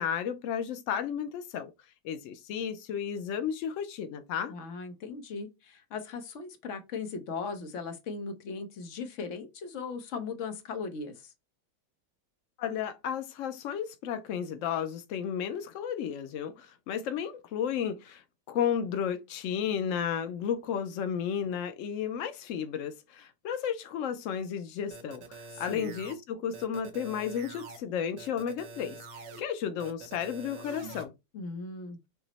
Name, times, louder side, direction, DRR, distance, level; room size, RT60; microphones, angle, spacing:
voice 1, 0.0-1.7 2.0-4.5 12.6-18.2 18.5-31.1, left 8 dB, 80° left, 0.7 m, -33 dB
voice 2, 4.5-11.3 25.5-26.0 31.3-32.0, left 4 dB, 55° left, 0.9 m, -38 dB
sound 1, 24.9-26.1 26.5-27.8 28.2-29.4 29.8-31.0, right 3 dB, 80° right, 1.4 m, -46 dB
5.9 x 2.0 x 4.0 m
omnidirectional pair, 1.9 m